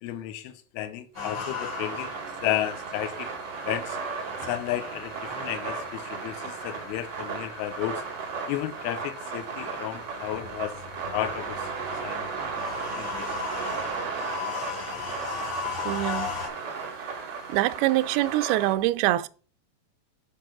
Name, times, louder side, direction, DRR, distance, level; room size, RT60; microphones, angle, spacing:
voice 1, 0.0-2.2 2.4-3.3 3.7-4.0 4.4-8.0 8.5-10.7 11.1-12.3 13.0-13.3, left 13 dB, 80° left, 2.4 m, -33 dB
sound 1, 1.1-16.5, left 5 dB, 35° left, 2.4 m, -38 dB
sound 2, 1.2-18.7, right 5 dB, 50° right, 2.1 m, -35 dB
voice 2, 15.9-16.3 17.5-19.3, right 16 dB, 90° right, 2.2 m, -24 dB
7.5 x 5.2 x 5.9 m
omnidirectional pair, 5.0 m